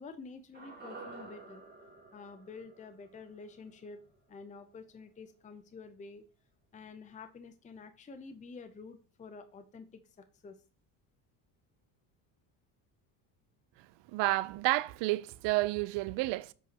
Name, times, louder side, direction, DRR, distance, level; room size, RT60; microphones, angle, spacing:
voice 1, 0.0-1.6 2.1-4.0 4.3-6.2 6.7-10.0 10.4-10.6, left 4 dB, 15° left, 0.6 m, -49 dB
sound 1, 0.5-4.9 5.1-5.2, right 3 dB, 20° right, 2.5 m, -51 dB
voice 2, 14.1-16.5, right 19 dB, 75° right, 0.6 m, -30 dB
7.7 x 5.1 x 2.9 m
cardioid pair, 125°, 43 cm